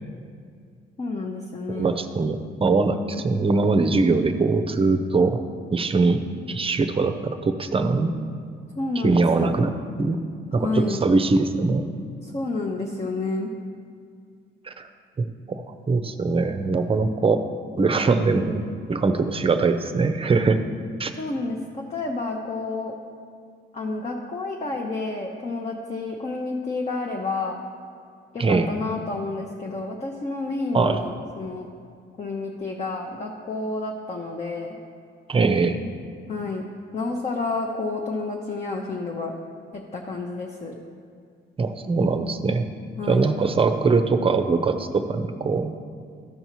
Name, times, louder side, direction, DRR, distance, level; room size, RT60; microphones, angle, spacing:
voice 1, 1.0-1.9 8.8-9.6 10.6-11.0 12.2-13.5 21.2-22.9 23.7-27.6 28.3-31.7 32.2-34.8 36.3-36.6 36.9-39.3 39.7-40.8 43.0-43.3, left 3 dB, 35° left, 0 dB, 0.8 m, -30 dB
voice 2, 1.7-5.4 5.7-8.1 9.0-9.7 10.0-10.2 10.5-11.9 14.6-14.9 15.2-17.5 17.8-20.6 21.0-21.1 28.4-28.7 30.7-31.0 35.3-35.8 41.6-42.7 43.1-45.7, right 3 dB, 30° right, 7 dB, 0.6 m, -22 dB
14.0 x 5.4 x 3.1 m, 2.2 s
cardioid pair, 90°, 20 cm